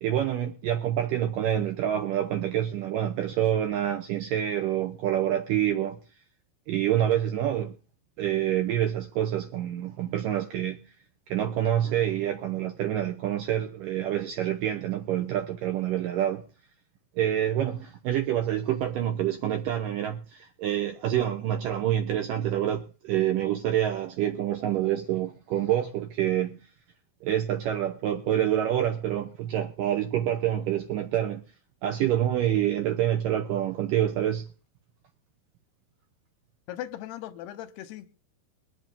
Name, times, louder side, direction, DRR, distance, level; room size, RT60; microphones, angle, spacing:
voice 1, 0.0-6.0 6.7-7.7 8.2-10.8 11.3-16.5 17.2-26.6 27.2-31.4 31.8-34.4, right 11 dB, 80° right, 2.0 m, -27 dB
voice 2, 36.7-38.1, left 12 dB, 80° left, 2.9 m, -38 dB
23.0 x 7.9 x 3.7 m
omnidirectional pair, 4.8 m